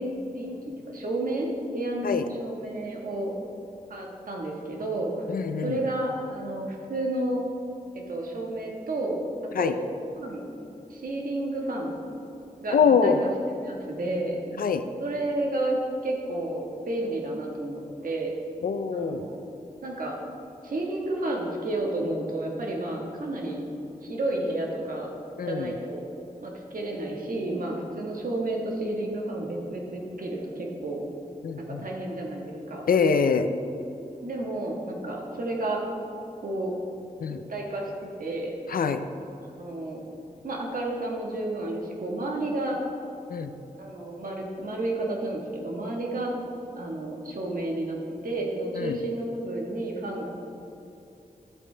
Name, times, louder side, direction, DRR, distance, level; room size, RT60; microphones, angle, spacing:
voice 1, 0.0-1.5 1.7-3.3 3.9-5.2 5.6-7.4 7.9-9.2 9.6-9.9 10.2-10.5 10.9-11.9 12.6-13.3 13.6-14.4 15.0-18.3 18.9-19.4 19.8-20.2 20.6-23.6 24.0-25.1 25.5-26.0 26.4-31.0 31.6-32.8 34.2-35.8 36.4-36.7 37.5-38.5 39.5-40.1 40.4-42.8 43.8-46.3 46.7-50.3, right 1 dB, 70° right, -1 dB, 1.5 m, -31 dB
voice 2, 5.3-5.8 9.6-9.7 12.7-13.2 14.6-14.8 18.6-19.2 25.4-25.7 31.4-31.8 32.9-33.5 37.2-37.4 38.7-39.0 43.3-43.5 48.8-49.0, left 6 dB, 75° left, 9 dB, 0.5 m, -24 dB
12.0 x 8.4 x 3.4 m, 2.9 s
wide cardioid pair, 110°, 15 cm